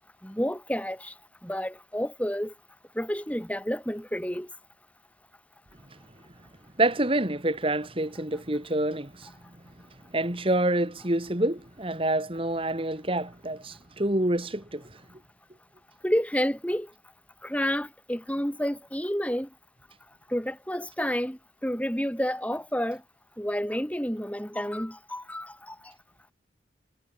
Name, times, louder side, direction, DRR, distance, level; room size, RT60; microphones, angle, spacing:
voice 1, 0.2-1.1 1.4-2.5 3.0-4.5 16.0-16.9 17.4-19.5 20.3-23.0 23.4-25.8, equal, 10° left, 5.3 m, -30 dB
voice 2, 6.8-9.3 10.1-14.9, right 1 dB, 30° right, 2.7 m, -27 dB
head